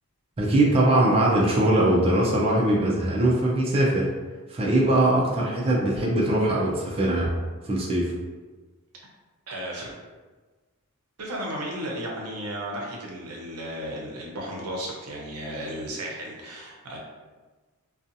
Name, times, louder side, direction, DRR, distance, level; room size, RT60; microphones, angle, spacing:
voice 1, 0.4-4.1 4.5-7.3 7.6-8.1, right 1 dB, 25° right, -4 dB, 0.4 m, -21 dB
voice 2, 9.5-9.9 11.2-17.0, right 1 dB, 85° right, -2 dB, 0.6 m, -34 dB
2.6 x 2.3 x 2.5 m, 1.3 s
head